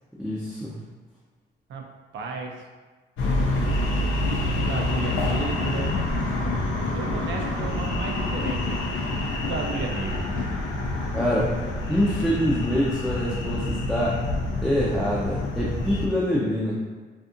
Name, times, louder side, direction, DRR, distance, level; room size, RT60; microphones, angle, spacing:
voice 1, 0.2-0.8 11.1-11.6 11.9-14.2 14.6-16.8, equal, ahead, -7 dB, 0.4 m, -25 dB
voice 2, 2.1-2.6 4.3-6.0 6.9-8.9 9.2-10.3, right 5 dB, 70° right, 2 dB, 0.5 m, -34 dB
sound 1, 3.2-16.1, left 2 dB, 80° left, 0.5 m, -27 dB
2.5 x 2.5 x 2.5 m, 1.3 s
cardioid pair, 90°, 20 cm